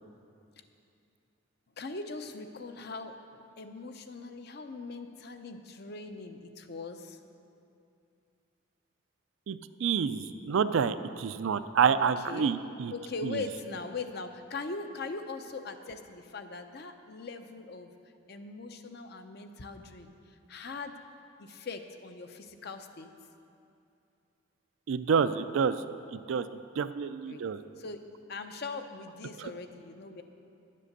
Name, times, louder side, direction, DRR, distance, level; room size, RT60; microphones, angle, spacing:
voice 1, 1.8-7.2 12.0-12.5 12.9-17.9 18.3-20.1 20.5-20.9 21.4-23.1 27.3-27.4 27.8-28.0 28.3-30.2, left 3 dB, 50° left, 8 dB, 0.6 m, -41 dB
voice 2, 9.5-12.9 13.2-13.4 24.9-25.8 26.1-26.5 26.8-27.6 29.4-29.5, right 6 dB, 70° right, 12 dB, 0.4 m, -28 dB
10.5 x 7.6 x 6.5 m, 2.6 s
head